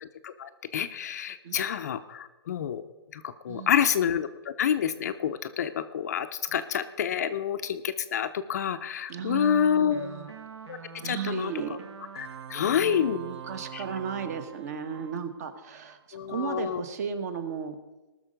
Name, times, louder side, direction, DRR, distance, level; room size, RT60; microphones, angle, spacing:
voice 1, 0.0-2.8 3.1-10.1 10.7-10.8 11.0-11.5 12.2-13.2 13.7-13.8 16.1-16.8, left 8 dB, 35° left, 9 dB, 0.5 m, -28 dB
voice 2, 3.5-3.9 6.5-6.6 9.1-10.3 11.0-11.8 12.6-17.8, right 6 dB, 35° right, 11 dB, 1.0 m, -35 dB
sound 1, 9.9-16.0, right 8 dB, 65° right, 1.8 m, -44 dB
19.5 x 6.5 x 5.1 m, 1.1 s
hypercardioid pair, 165°, 15 cm